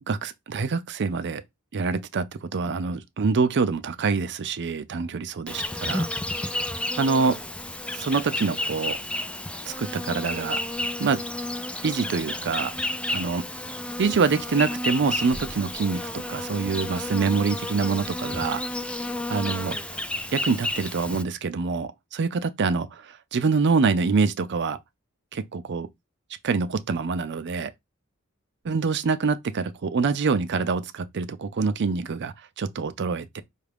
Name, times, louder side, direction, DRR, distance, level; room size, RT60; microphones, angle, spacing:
voice 1, 0.1-1.4 1.7-6.1 7.0-7.4 8.0-9.0 9.7-10.6 11.0-11.2 11.8-12.7 13.1-13.5 14.0-18.6 19.3-19.8 20.3-24.8 25.3-25.9 26.4-27.7 28.7-33.4, right 4 dB, 55° right, 0.5 m, -25 dB
Insect, 5.5-21.2, left 1 dB, 5° left, 0.3 m, -31 dB
5.3 x 2.4 x 3.3 m
head